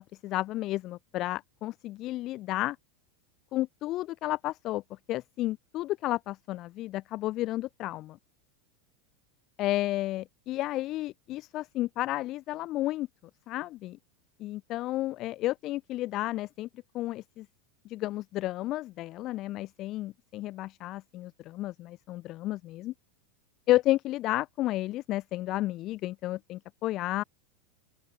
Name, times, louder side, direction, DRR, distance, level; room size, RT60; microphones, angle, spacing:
voice 1, 0.0-2.8 3.5-8.2 9.6-13.1 13.5-14.0 14.4-16.7 16.9-17.5 17.8-22.9 23.7-27.2, left 16 dB, 45° left, 4.2 m, -32 dB
open air
hypercardioid pair, 100°, 0 cm